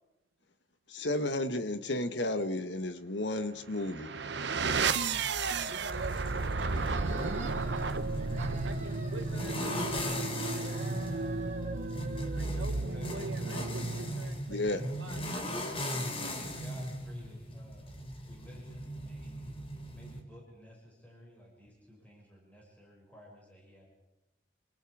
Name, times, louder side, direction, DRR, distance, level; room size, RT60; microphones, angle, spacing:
voice 1, 0.9-4.1 14.5-14.8, left 1 dB, 70° left, 1.6 m, -32 dB
sound 1, 3.7-14.4, right 4 dB, 70° right, 0.9 m, -34 dB
sound 2, 4.7-20.2, equal, 30° left, 3.1 m, -39 dB
sound 3, 5.0-6.2 6.5-7.9 8.2-10.3 10.6-12.6, right 2 dB, 40° right, 4.2 m, -46 dB
voice 2, 5.7-8.0 8.6-11.0 12.3-16.0, right 3 dB, 85° right, 1.3 m, -46 dB
voice 3, 12.4-13.2 16.1-19.6 19.9-23.9, left 1 dB, 10° left, 6.9 m, -53 dB
28.0 x 25.5 x 5.0 m
head